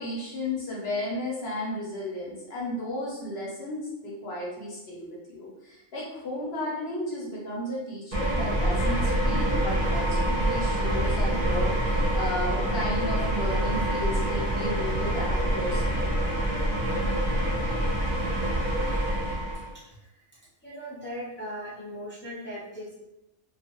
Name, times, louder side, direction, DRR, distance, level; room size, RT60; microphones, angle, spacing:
voice 1, 0.0-16.1, left 1 dB, 60° left, -4 dB, 0.8 m, -34 dB
sound 1, 8.1-19.7, right 1 dB, 35° right, 0.6 m, -26 dB
voice 2, 19.7-22.9, equal, 15° left, -8 dB, 0.5 m, -39 dB
2.4 x 2.3 x 2.9 m, 0.96 s
omnidirectional pair, 1.4 m